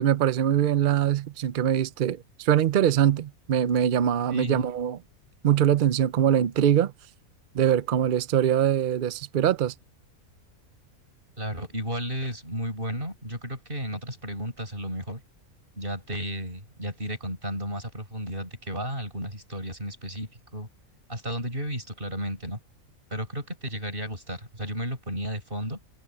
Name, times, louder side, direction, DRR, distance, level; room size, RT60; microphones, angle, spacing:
voice 1, 0.0-5.0 5.4-6.9 7.5-9.7, right 10 dB, 70° right, 0.4 m, -23 dB
voice 2, 4.3-4.7 11.4-15.2 15.7-20.7 21.1-22.6 23.1-25.8, equal, 35° right, 8.1 m, -33 dB
omnidirectional pair, 1.6 m